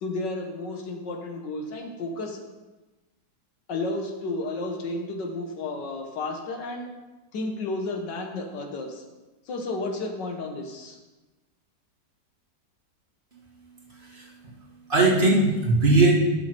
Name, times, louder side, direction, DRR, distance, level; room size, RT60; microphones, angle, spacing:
voice 1, 0.0-2.4 3.7-6.9 7.3-9.0 9.5-11.0, left 2 dB, 75° left, 3 dB, 1.9 m, -32 dB
voice 2, 13.9-14.5 14.9-16.1, right 2 dB, 30° right, -4 dB, 1.7 m, -20 dB
11.0 x 6.6 x 4.5 m, 1.1 s
omnidirectional pair, 1.9 m